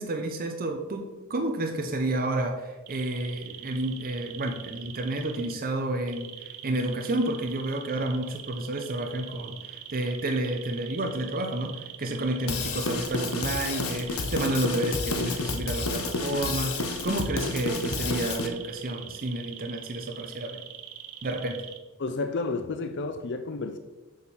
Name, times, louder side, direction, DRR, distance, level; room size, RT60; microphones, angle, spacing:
voice 1, 0.0-20.6 21.2-21.6, right 1 dB, 45° right, 4 dB, 0.8 m, -30 dB
sound 1, 2.9-5.5 6.1-21.8, right 10 dB, 85° right, 1.0 m, -42 dB
Drum kit / Drum, 12.5-18.5, left 3 dB, 90° left, 1.0 m, -30 dB
voice 2, 22.0-23.8, left 3 dB, 55° left, 8 dB, 0.5 m, -31 dB
6.9 x 6.6 x 5.6 m, 1.2 s
head